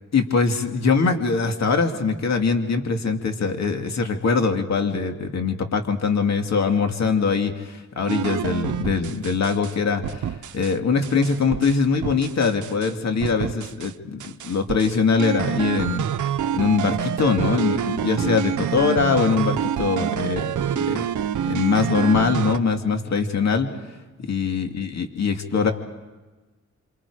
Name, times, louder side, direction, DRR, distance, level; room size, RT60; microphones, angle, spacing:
voice 1, 0.1-10.3 10.5-16.1 16.5-21.1 21.5-23.7 24.3-25.7, left 5 dB, 65° left, 4 dB, 2.5 m, -22 dB
sound 1, 8.1-9.7 10.0-10.7 11.0-12.9 13.2-13.9 14.2-22.6, right 9 dB, 85° right, 0.9 m, -27 dB
28.0 x 27.0 x 5.0 m, 1.2 s
cardioid pair, 95°, 29 cm